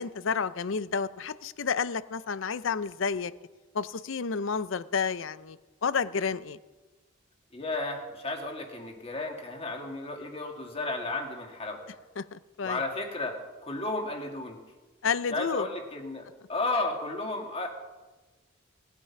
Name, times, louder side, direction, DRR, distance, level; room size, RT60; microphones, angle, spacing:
voice 1, 0.0-3.3 3.7-6.6 12.2-12.8 15.0-15.7, left 5 dB, 65° left, 16 dB, 0.5 m, -30 dB
voice 2, 7.5-11.8 12.6-13.4 13.6-14.6 15.3-17.7, left 2 dB, 30° left, 2 dB, 2.1 m, -33 dB
18.5 x 9.1 x 5.9 m, 1.2 s
head